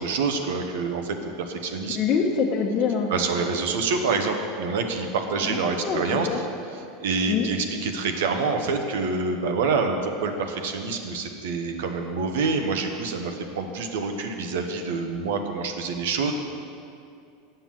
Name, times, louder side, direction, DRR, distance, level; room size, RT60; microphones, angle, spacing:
voice 1, 0.0-2.0 3.1-6.3 7.0-16.3, right 4 dB, 75° right, 5 dB, 1.0 m, -27 dB
voice 2, 1.9-3.1 5.4-6.4 7.3-7.5, left 6 dB, 45° left, 0 dB, 1.0 m, -25 dB
7.7 x 7.0 x 7.5 m, 2.5 s
hypercardioid pair, 95°, 0 cm